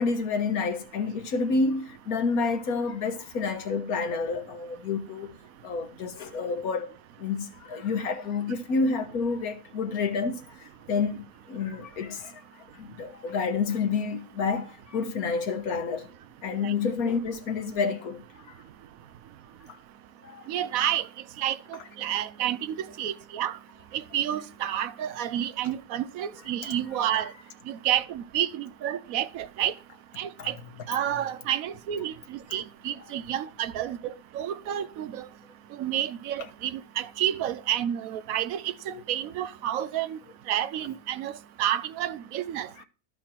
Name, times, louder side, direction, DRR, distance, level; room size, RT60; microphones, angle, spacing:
voice 1, 0.0-5.4 5.6-6.9 7.2-16.1 16.4-18.6 19.7-19.8 20.2-20.5 26.6-26.7 30.4-30.5 38.9-39.0 42.8-42.9, left 4 dB, 80° left, 1.7 m, -29 dB
voice 2, 20.5-21.1 21.4-23.6 23.9-27.3 27.7-29.7 30.2-30.6 30.9-35.3 35.8-40.2 40.5-42.8, right 11 dB, 75° right, 1.1 m, -30 dB
13.5 x 5.1 x 4.4 m
omnidirectional pair, 1.5 m